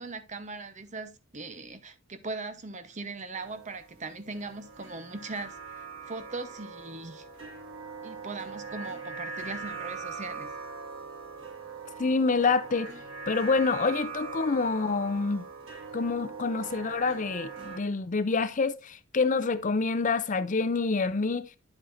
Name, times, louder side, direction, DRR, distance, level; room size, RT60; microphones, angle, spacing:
voice 1, 0.0-7.3 8.0-10.5, right 3 dB, 35° right, 0.9 m, -39 dB
sound 1, 3.3-17.8, right 4 dB, 90° right, 4.3 m, -41 dB
voice 2, 12.0-12.9 13.3-15.5 15.9-21.4, left 4 dB, 40° left, 0.5 m, -27 dB
9.6 x 8.0 x 2.6 m
head